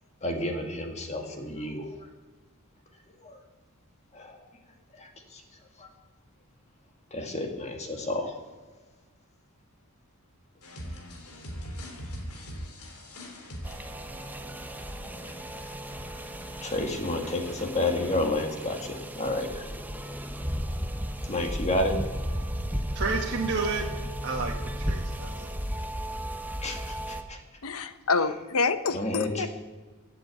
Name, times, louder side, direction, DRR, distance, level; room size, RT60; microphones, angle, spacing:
voice 1, 0.2-2.1 3.2-3.4 4.1-4.4 4.9-5.4 5.8-5.9 7.1-8.3 15.2-15.3 16.6-19.7 21.2-21.9 26.6-27.4 28.9-29.5, left 2 dB, 30° left, 3 dB, 1.9 m, -31 dB
sound 1, 10.6-18.5, equal, 85° left, 3.0 m, -43 dB
sound 2, 13.6-27.2, equal, 10° right, 0.9 m, -35 dB
voice 2, 22.9-23.8 24.2-25.5, right 4 dB, 50° right, -1 dB, 1.3 m, -31 dB
voice 3, 27.6-29.5, left 4 dB, 70° left, 12 dB, 0.9 m, -27 dB
16.0 x 7.8 x 8.3 m, 1.3 s
head